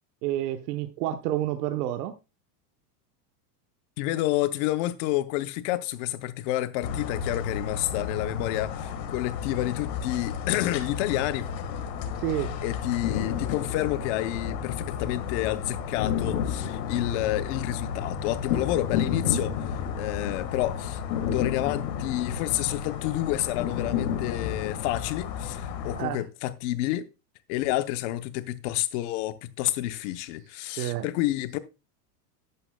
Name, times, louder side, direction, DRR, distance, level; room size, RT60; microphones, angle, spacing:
voice 1, 0.2-2.1 12.2-12.5 26.0-26.2 30.8-31.0, right 13 dB, 70° right, 1.0 m, -29 dB
voice 2, 4.0-11.5 12.4-27.1 27.5-31.6, left 15 dB, 45° left, 0.8 m, -29 dB
sound 1, 6.8-26.0, left 7 dB, 90° left, 1.7 m, -32 dB
11.5 x 9.7 x 2.2 m
supercardioid pair, 170°, 49 cm